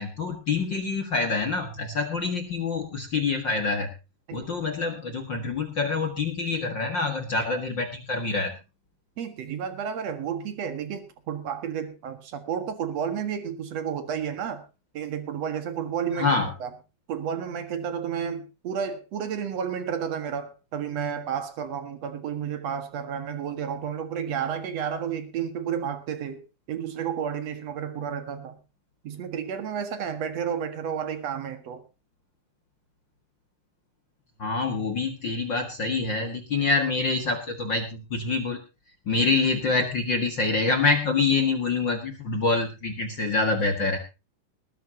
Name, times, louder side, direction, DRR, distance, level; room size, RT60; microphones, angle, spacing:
voice 1, 0.0-3.9 4.3-8.5 16.1-16.5 34.4-38.6 39.0-44.0, left 3 dB, 55° left, 5 dB, 1.3 m, -26 dB
voice 2, 9.2-14.6 14.9-16.3 16.6-16.7 17.1-26.4 26.7-28.6 29.0-31.8, right 8 dB, 50° right, 9 dB, 2.2 m, -31 dB
20.5 x 12.0 x 2.8 m, 0.29 s
omnidirectional pair, 4.8 m